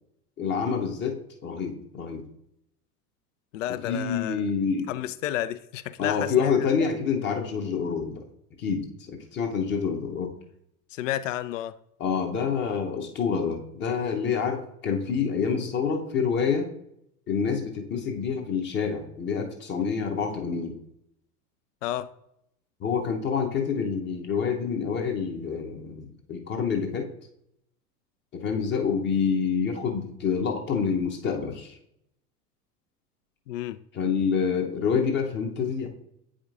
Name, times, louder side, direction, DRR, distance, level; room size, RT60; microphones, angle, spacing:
voice 1, 0.4-2.2 3.8-4.9 6.0-8.2 8.6-10.3 12.0-16.7 17.3-20.8 22.8-27.1 28.3-31.8 33.9-35.9, left 6 dB, 25° left, 0.8 m, -27 dB
voice 2, 3.5-4.4 4.9-6.5 10.9-11.7 21.8-22.1 33.5-33.8, left 13 dB, 55° left, 0.5 m, -31 dB
8.5 x 5.1 x 2.5 m
figure-of-eight pair, 85°, 47 cm